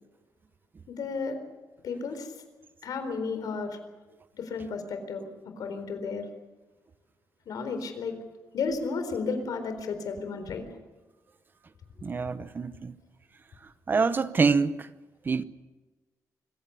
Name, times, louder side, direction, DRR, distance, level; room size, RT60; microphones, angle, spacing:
voice 1, 0.9-1.4 1.8-2.3 2.8-3.8 4.3-5.3 5.6-6.3 7.5-8.1 8.5-10.6, left 4 dB, 80° left, 4.1 m, -33 dB
voice 2, 12.0-12.9 13.9-14.9 15.2-15.4, right 4 dB, 30° right, 0.8 m, -25 dB
25.0 x 16.0 x 8.4 m
wide cardioid pair, 160°, 6 cm